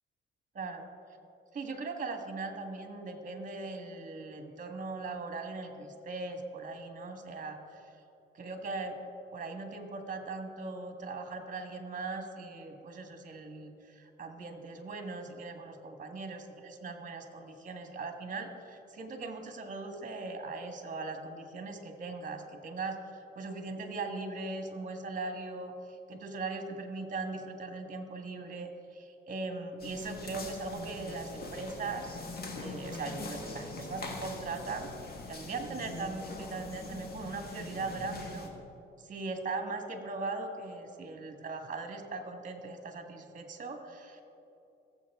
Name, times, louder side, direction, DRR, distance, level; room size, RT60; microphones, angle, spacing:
voice 1, 0.5-0.8 1.5-7.8 8.3-9.0 9.3-32.1 32.5-34.9 35.3-38.5 39.0-44.2, right 3 dB, 40° right, 5 dB, 1.5 m, -39 dB
sound 1, 29.8-38.5, left 2 dB, 50° left, 1.5 m, -43 dB
17.5 x 7.5 x 3.6 m, 2.8 s
cardioid pair, 90°, 20 cm